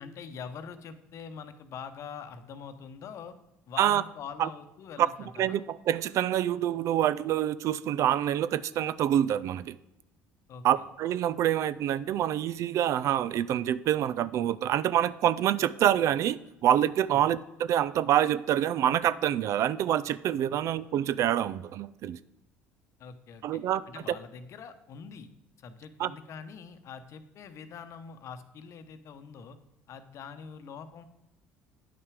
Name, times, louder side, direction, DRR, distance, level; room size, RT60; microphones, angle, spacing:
voice 1, 0.0-3.3 3.7-5.6 10.5-10.9 17.1-17.3 23.0-23.6 23.9-25.3 25.6-29.6 29.9-31.0, left 6 dB, 55° left, 10 dB, 0.8 m, -44 dB
voice 2, 5.4-9.8 10.6-22.2 23.4-23.8 26.0-26.1, right 11 dB, 55° right, 17 dB, 0.4 m, -26 dB
9.4 x 5.7 x 4.8 m, 0.94 s
hypercardioid pair, 75°, 6 cm